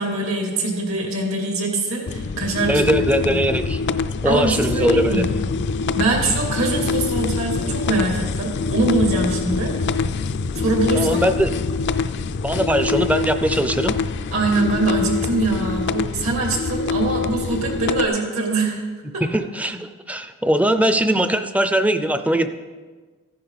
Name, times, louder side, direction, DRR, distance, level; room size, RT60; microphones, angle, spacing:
voice 1, 0.0-2.8 3.3-3.4 4.2-5.3 5.9-9.7 10.6-11.2 14.3-18.8 19.1-19.2, right 2 dB, 75° right, 0 dB, 2.8 m, -23 dB
sound 1, 2.1-18.1, left 4 dB, 55° left, 0.4 m, -24 dB
voice 2, 2.7-3.8 4.2-5.2 10.9-11.5 12.4-13.9 19.2-22.5, right 1 dB, 5° right, 10 dB, 0.5 m, -20 dB
14.5 x 10.5 x 4.1 m, 1.4 s
head